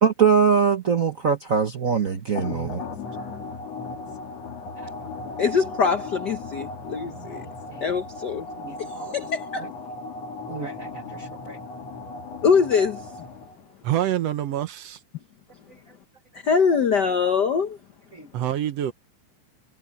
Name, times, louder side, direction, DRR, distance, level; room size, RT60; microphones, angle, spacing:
voice 1, 0.0-2.8 4.8-4.9 5.2-5.4 7.3-7.8 8.6-9.1 10.5-11.6 18.1-18.3, right 6 dB, 80° right, 0.7 m, -24 dB
sound 1, 2.4-13.7, left 3 dB, 60° left, 3.1 m, -36 dB
voice 2, 5.4-7.4 7.8-8.5 8.8-9.6 12.4-13.1 16.4-17.8, left 6 dB, 85° left, 0.9 m, -23 dB
voice 3, 13.8-15.0 18.3-18.9, right 12 dB, 65° right, 1.8 m, -26 dB
omnidirectional pair, 3.4 m